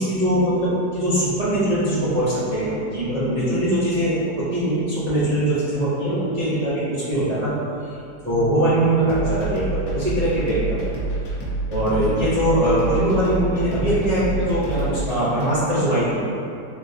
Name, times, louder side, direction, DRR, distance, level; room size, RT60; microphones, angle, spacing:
voice 1, 0.0-7.6 7.9-8.0 8.2-10.9 11.7-16.3, right 1 dB, 75° right, -12 dB, 0.3 m, -21 dB
sound 1, 9.1-15.5, right 2 dB, 60° left, 1.1 m, -27 dB
3.6 x 2.6 x 2.6 m, 2.4 s
omnidirectional pair, 1.8 m